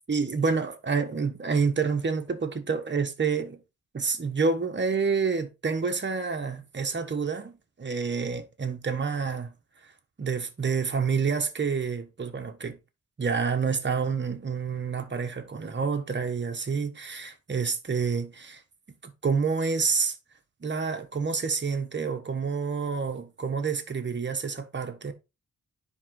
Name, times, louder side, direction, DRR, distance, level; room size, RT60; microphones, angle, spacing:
voice 1, 0.1-3.6 3.9-9.5 10.2-12.8 13.2-18.6 19.0-20.2 20.6-25.1, right 5 dB, 35° right, 1.2 m, -28 dB
9.9 x 3.7 x 3.8 m
wide cardioid pair, 120°, 32 cm